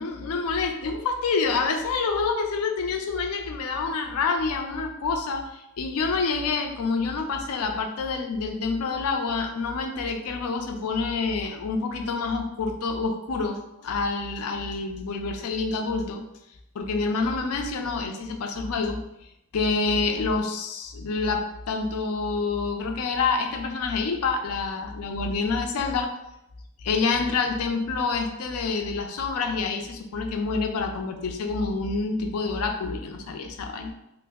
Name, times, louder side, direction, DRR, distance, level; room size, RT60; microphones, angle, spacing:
voice 1, 0.0-16.2 16.7-19.0 19.5-26.1 26.8-33.9, left 4 dB, 85° left, 4 dB, 0.4 m, -27 dB
3.1 x 2.0 x 3.5 m, 0.86 s
head